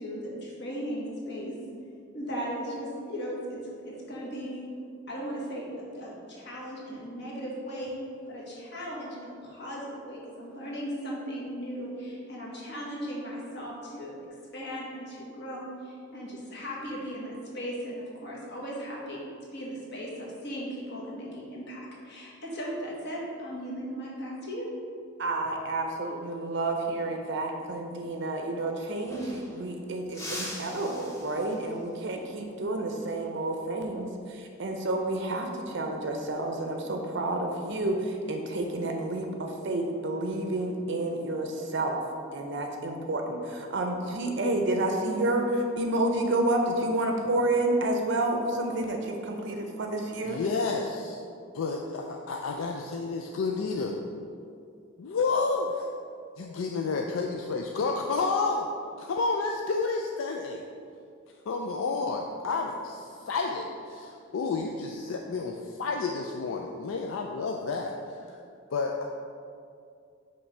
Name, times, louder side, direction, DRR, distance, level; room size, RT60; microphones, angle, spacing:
voice 1, 0.0-1.6 2.1-4.6 5.1-5.7 5.9-7.9 8.3-14.2 14.5-19.2 19.5-21.8 22.0-24.7, equal, 55° left, -4 dB, 1.4 m, -37 dB
voice 2, 25.2-42.0 42.3-50.4, right 2 dB, 60° right, 3 dB, 0.5 m, -30 dB
sound 1, 28.5-28.6 28.8-29.7 30.1-31.9 34.4-34.6 36.1-36.5, left 1 dB, 15° left, 0.8 m, -42 dB
voice 3, 50.2-51.2 51.5-54.0 55.0-55.9 56.4-58.7 59.0-60.7 61.5-68.0 68.3-68.4 68.7-69.0, left 4 dB, 80° left, 2 dB, 0.4 m, -30 dB
5.7 x 3.1 x 5.4 m, 2.4 s
head